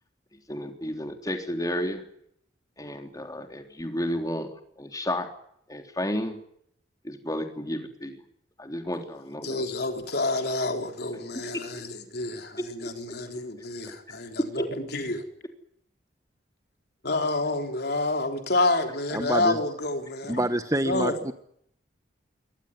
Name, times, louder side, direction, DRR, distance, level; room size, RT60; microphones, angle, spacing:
voice 1, 0.5-2.0 2.8-5.3 5.7-6.4 7.0-8.2 8.6-9.6 11.5-11.6 12.8-12.9 13.8-13.9, left 1 dB, 20° left, 3.4 m, -32 dB
voice 2, 9.4-15.2 17.0-20.4 20.8-21.2, left 2 dB, 55° left, 3.7 m, -28 dB
voice 3, 19.1-19.6 20.3-21.3, right 1 dB, 15° right, 1.2 m, -27 dB
23.5 x 18.5 x 9.7 m
head